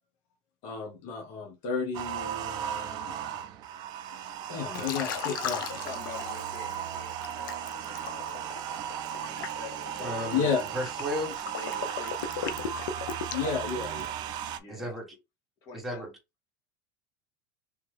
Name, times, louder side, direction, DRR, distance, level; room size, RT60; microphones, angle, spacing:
voice 1, 0.6-3.2 4.1-5.8 10.3-10.7 13.3-14.1, left 6 dB, 55° left, 1.2 m, -32 dB
sound 1, 1.9-14.6, right 9 dB, 45° right, 0.5 m, -36 dB
Liquid, 4.7-6.7 7.2-14.2, left 8 dB, 90° left, 0.6 m, -37 dB
voice 2, 5.8-8.5 9.1-10.3 11.4-12.8 14.6-14.9 15.6-16.1, left 5 dB, 40° left, 2.0 m, -47 dB
voice 3, 10.0-11.4 14.7-15.1 15.7-16.1, equal, ahead, 1.5 m, -34 dB
3.4 x 3.0 x 3.3 m
supercardioid pair, 140°, 10 cm